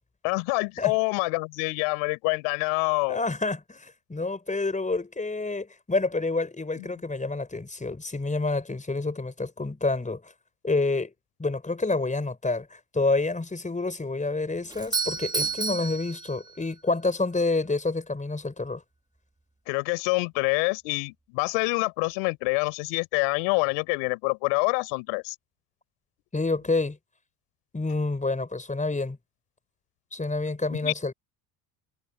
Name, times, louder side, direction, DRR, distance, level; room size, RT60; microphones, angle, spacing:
voice 1, 0.2-3.2 6.8-6.9 19.7-25.3 30.8-30.9, left 32 dB, 75° left, 4.2 m, -26 dB
voice 2, 3.1-10.3 10.6-11.1 11.4-18.8 26.3-27.0 27.7-29.2 30.1-31.1, left 3 dB, 15° left, 5.3 m, -28 dB
Doorbell, 14.7-16.9, right 4 dB, 10° right, 1.7 m, -31 dB
hypercardioid pair, 70°, 49 cm